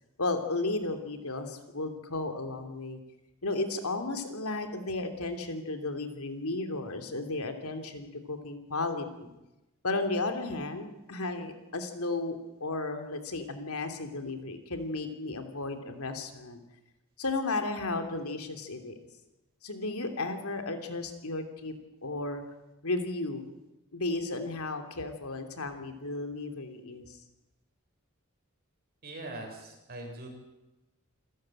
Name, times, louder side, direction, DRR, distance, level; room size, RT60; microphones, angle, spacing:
voice 1, 0.2-3.0 3.4-9.3 9.8-16.6 17.2-19.0 19.6-21.7 22.0-22.4 22.8-23.5 23.9-27.2, left 2 dB, 80° left, 6 dB, 3.1 m, -34 dB
voice 2, 29.0-30.3, right 2 dB, 45° right, 2 dB, 7.3 m, -41 dB
28.0 x 14.5 x 9.0 m, 1.0 s
head